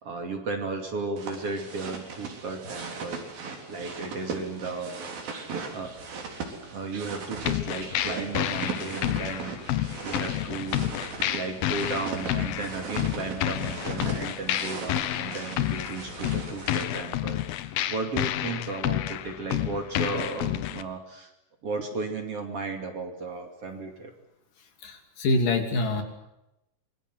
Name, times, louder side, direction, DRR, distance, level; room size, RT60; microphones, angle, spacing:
voice 1, 0.0-5.2 5.7-6.0 6.7-21.3 21.6-24.1, right 3 dB, 40° right, 4 dB, 3.3 m, -35 dB
sound 1, 1.2-16.9, right 4 dB, 70° right, 5.5 m, -38 dB
sound 2, 7.4-20.8, left 13 dB, 80° left, 2.9 m, -30 dB
voice 2, 24.8-26.0, left 2 dB, 65° left, 5 dB, 4.4 m, -25 dB
26.5 x 22.5 x 7.9 m, 0.89 s
omnidirectional pair, 4.2 m